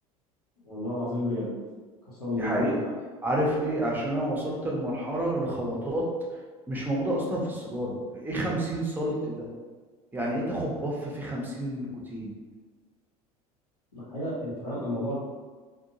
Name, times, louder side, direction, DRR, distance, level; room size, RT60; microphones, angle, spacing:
voice 1, 0.6-1.6 2.1-2.7 13.9-15.1, left 1 dB, 85° left, -9 dB, 0.9 m, -31 dB
voice 2, 2.3-2.8 3.2-6.1 6.7-9.5 10.1-12.3, right 1 dB, 10° right, -4 dB, 0.7 m, -29 dB
2.6 x 2.1 x 2.7 m, 1.4 s
figure-of-eight pair, 70°, 19 cm